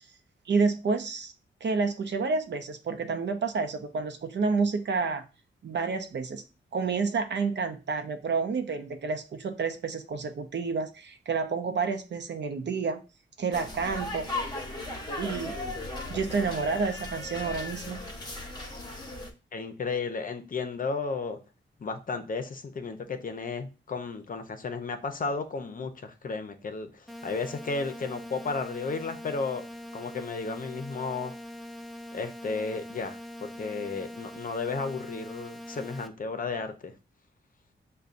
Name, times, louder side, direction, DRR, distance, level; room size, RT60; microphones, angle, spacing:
voice 1, 0.5-1.3 1.6-5.2 5.6-6.4 6.7-13.0 13.4-14.3 15.1-15.6 16.1-18.0, right 4 dB, 65° right, 6 dB, 0.6 m, -29 dB
sound 1, 13.5-19.3, left 2 dB, 20° left, 1.0 m, -37 dB
voice 2, 19.5-21.4 21.8-29.6 29.9-31.3 32.1-36.9, left 4 dB, 45° left, 7 dB, 0.6 m, -33 dB
sound 2, 27.1-36.1, left 1 dB, ahead, 0.4 m, -42 dB
6.7 x 2.2 x 2.5 m, 0.31 s
cardioid pair, 85°, 20 cm